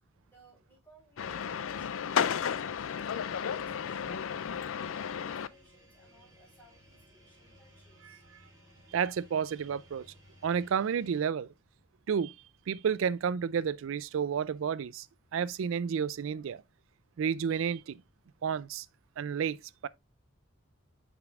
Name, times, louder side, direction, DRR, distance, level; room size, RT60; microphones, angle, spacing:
voice 1, 0.3-8.2, right 1 dB, 10° left, 4.0 m, -61 dB
sound 1, 1.2-5.5, left 7 dB, 80° left, 0.4 m, -33 dB
sound 2, 1.2-11.2, equal, 15° right, 2.8 m, -60 dB
voice 2, 8.9-10.1 10.4-11.5 12.1-12.4 12.7-15.1 15.3-16.6 17.2-18.0 18.4-18.9 19.2-19.6 19.8-19.9, right 7 dB, 75° right, 0.4 m, -31 dB
8.0 x 5.1 x 2.4 m
head